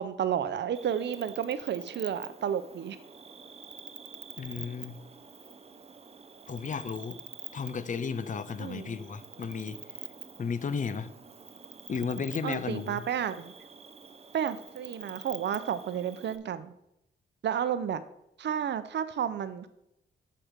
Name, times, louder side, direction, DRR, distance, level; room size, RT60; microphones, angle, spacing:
voice 1, 0.0-3.0 8.6-9.0 12.4-13.5 14.3-16.7 17.4-18.0 18.4-19.7, right 9 dB, 75° right, 0.6 m, -31 dB
Cricket, 0.7-16.4, right 5 dB, 35° right, 0.7 m, -47 dB
voice 2, 4.4-5.0 6.5-7.2 7.5-9.8 10.4-11.1 11.9-13.0, left 5 dB, 45° left, 0.6 m, -34 dB
7.6 x 6.0 x 5.1 m
cardioid pair, 90°, 18 cm